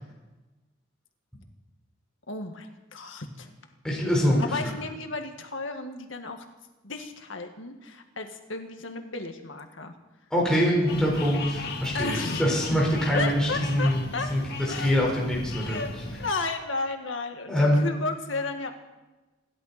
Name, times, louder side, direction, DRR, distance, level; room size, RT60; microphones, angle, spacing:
voice 1, 2.3-3.5 4.4-6.4 6.8-9.9 11.9-12.6 13.1-14.3 14.6-15.0 15.6-18.7, left 3 dB, 80° left, 5 dB, 1.8 m, -33 dB
voice 2, 3.8-4.6 10.3-15.8 17.5-17.8, equal, 5° left, -5 dB, 4.7 m, -24 dB
sound 1, 10.9-16.3, left 2 dB, 55° left, 1.9 m, -37 dB
28.0 x 11.5 x 4.3 m, 1.1 s
head